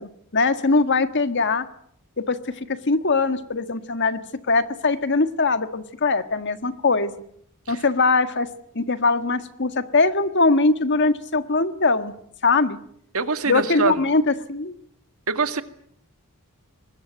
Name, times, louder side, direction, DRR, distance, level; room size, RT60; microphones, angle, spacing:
voice 1, 0.0-1.6 2.3-2.4 2.9-4.2 4.5-7.1 7.7-8.5 8.7-12.1 12.4-12.8 13.5-14.7, left 3 dB, 55° left, 10 dB, 1.6 m, -21 dB
voice 2, 13.1-14.0 15.3-15.6, right 4 dB, 70° right, 10 dB, 1.9 m, -24 dB
23.5 x 20.5 x 9.2 m, 0.68 s
head